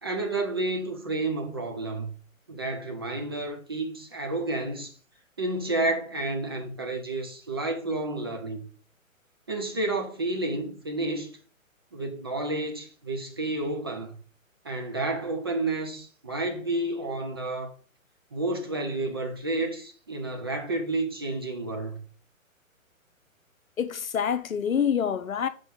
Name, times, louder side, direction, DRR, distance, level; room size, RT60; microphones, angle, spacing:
voice 1, 0.0-2.1 2.5-4.9 5.4-8.7 9.5-11.3 11.9-14.1 14.6-17.7 18.3-22.0, right 2 dB, 20° right, 0.4 m, -30 dB
voice 2, 23.8-25.5, left 8 dB, 75° left, 0.8 m, -26 dB
5.5 x 4.6 x 4.4 m
figure-of-eight pair, 130°, 41 cm